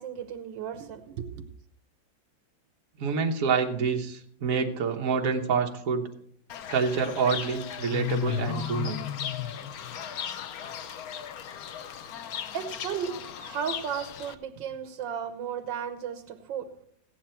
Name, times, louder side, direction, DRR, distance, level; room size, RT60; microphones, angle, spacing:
voice 1, 0.0-1.4 12.5-16.7, right 8 dB, 80° right, 7 dB, 1.5 m, -35 dB
voice 2, 3.0-6.1 6.7-9.0, right 5 dB, 50° right, 3 dB, 1.4 m, -27 dB
Fowl / Bird, 6.5-14.3, left 10 dB, 65° left, 1.0 m, -35 dB
15.5 x 9.1 x 4.4 m, 0.65 s
omnidirectional pair, 2.0 m